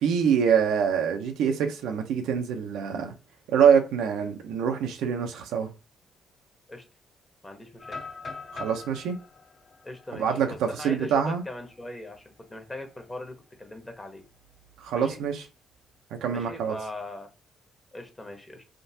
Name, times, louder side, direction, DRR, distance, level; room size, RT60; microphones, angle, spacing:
voice 1, 0.0-3.1 3.5-5.7 8.5-9.2 10.1-11.4 14.8-15.4 16.2-16.7, right 7 dB, 90° right, 0.6 m, -25 dB
voice 2, 7.4-8.0 9.8-14.2 14.9-15.2 16.3-17.3 17.9-18.6, left 1 dB, 20° left, 1.0 m, -40 dB
sound 1, 7.8-11.7 12.1-12.2 12.7-13.0 14.4-15.2, left 4 dB, 50° left, 1.1 m, -43 dB
3.6 x 2.4 x 2.7 m
cardioid pair, 90°, 0 cm